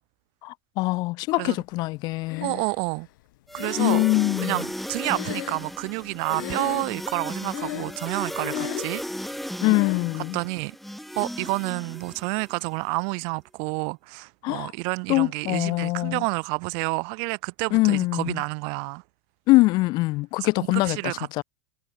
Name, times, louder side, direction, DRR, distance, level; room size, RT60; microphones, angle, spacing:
voice 1, 0.4-2.6 3.8-4.6 9.6-10.4 14.4-14.7 15.1-16.2 17.7-18.4 19.5-21.0 21.3-21.4, left 21 dB, 40° left, 0.6 m, -23 dB
Breathing, 2.3-3.0 3.6-6.0 6.3-7.1 7.5-8.1 8.3-9.0 9.6-10.1, left 18 dB, 65° left, 7.0 m, -35 dB
voice 2, 2.4-3.1 3.5-4.0 4.4-9.0 10.3-10.7 11.2-19.0 20.4-21.4, right 40 dB or more, 50° right, 1.3 m, -29 dB
sound 1, 3.5-12.6, equal, ahead, 3.8 m, -35 dB
supercardioid pair, 145°, 11 cm